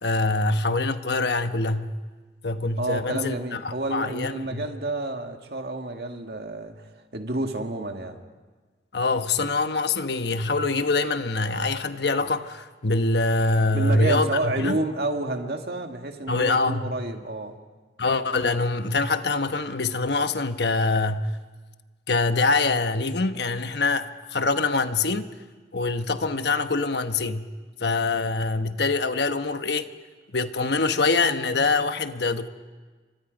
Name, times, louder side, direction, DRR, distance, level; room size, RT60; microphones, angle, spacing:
voice 1, 0.0-1.9 2.4-4.6 8.9-14.8 16.3-16.9 18.0-21.3 22.1-25.3 25.7-27.4 27.8-29.9 30.3-32.5, left 3 dB, 65° left, 9 dB, 1.1 m, -24 dB
voice 2, 2.8-8.2 13.7-17.6, right 2 dB, 60° right, 4 dB, 1.9 m, -30 dB
30.0 x 25.0 x 5.2 m, 1.3 s
head